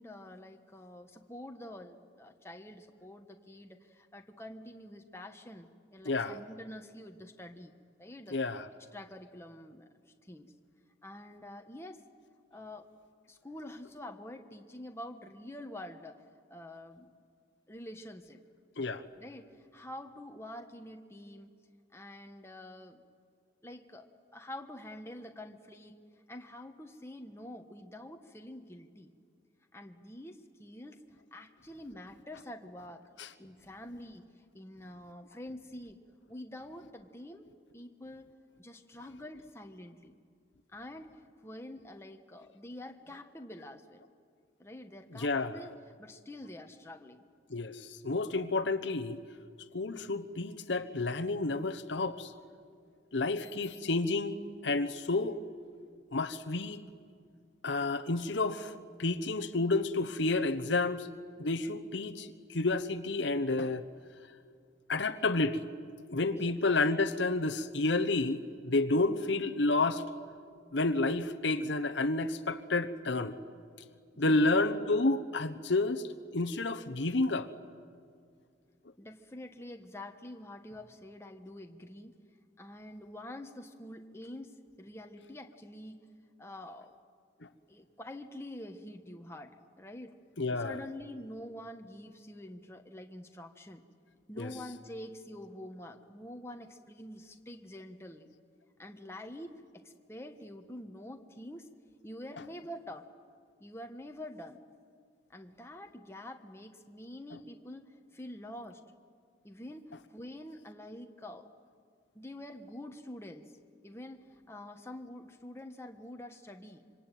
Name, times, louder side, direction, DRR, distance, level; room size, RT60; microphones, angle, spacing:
voice 1, 0.0-7.7 8.0-8.4 8.9-9.9 10.3-10.5 11.0-12.0 12.5-12.9 13.3-16.2 16.5-17.2 17.7-18.4 19.2-21.5 21.9-23.0 23.6-26.0 26.3-29.1 29.7-31.0 31.3-33.0 33.4-34.3 34.5-36.0 36.3-37.4 37.7-40.1 40.7-41.1 41.4-44.0 44.6-45.7 46.0-47.2 66.3-66.5 74.1-74.5 79.0-82.2 82.6-86.0 86.4-86.9 87.7-90.1 90.6-93.8 94.3-98.3 98.8-101.7 102.0-103.1 103.6-104.6 105.3-108.8 109.4-111.5 112.1-113.5 113.8-116.9, left 1 dB, 15° left, 4 dB, 1.3 m, -47 dB
voice 2, 6.0-6.4 8.3-8.7 18.8-19.0 33.2-33.3 45.1-45.6 47.5-49.2 49.7-52.3 53.1-55.4 56.1-56.8 57.6-61.1 61.4-63.8 64.9-65.6 66.1-70.0 70.7-73.4 74.2-76.0 76.3-77.5 87.4-87.5 90.4-90.8 94.4-94.5, left 2 dB, 70° left, 8 dB, 1.1 m, -30 dB
26.5 x 24.0 x 9.3 m, 2.2 s
head